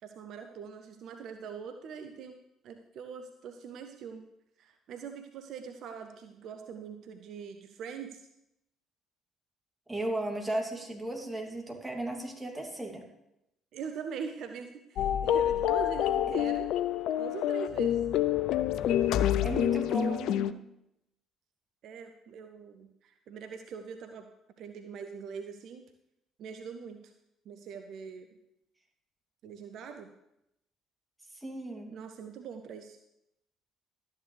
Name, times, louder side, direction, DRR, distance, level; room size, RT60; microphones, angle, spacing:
voice 1, 0.0-2.3 2.6-4.3 4.6-8.3 13.7-16.7 17.2-18.0 21.8-24.3 24.6-25.8 26.4-27.0 27.5-28.3 29.4-30.1 31.9-33.0, right 6 dB, 55° right, 7 dB, 0.7 m, -42 dB
voice 2, 9.9-13.0 19.4-20.6 31.3-31.9, right 1 dB, 10° right, 0 dB, 2.7 m, -35 dB
sound 1, 15.0-20.5, left 11 dB, 60° left, 0.4 m, -27 dB
12.5 x 9.4 x 3.3 m, 0.84 s
figure-of-eight pair, 50°, 0 cm